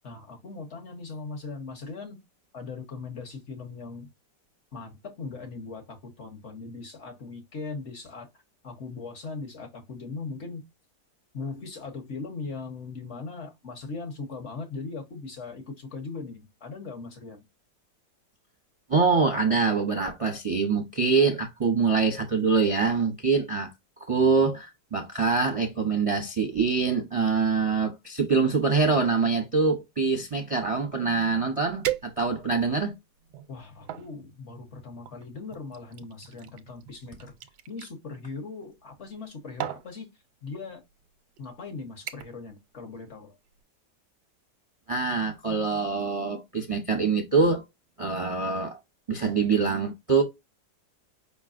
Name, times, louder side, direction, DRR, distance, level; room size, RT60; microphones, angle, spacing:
voice 1, 0.0-2.2 2.5-4.1 4.7-8.3 8.6-10.6 11.3-17.4 33.5-37.4 37.7-40.1 40.4-40.8 41.4-43.4, left 4 dB, 50° left, 1.2 m, -39 dB
voice 2, 18.9-23.7 24.0-32.9 44.9-47.6 48.0-48.8 49.1-50.2, right 4 dB, 35° right, 0.6 m, -24 dB
sound 1, 31.8-32.6 33.2-34.1 35.0-37.9 39.0-39.3 39.6-39.9 40.8-40.9 41.4-41.6 42.1-42.5 42.8-43.1 43.5-43.6, right 13 dB, 85° right, 1.2 m, -36 dB
5.2 x 3.1 x 2.5 m
omnidirectional pair, 1.8 m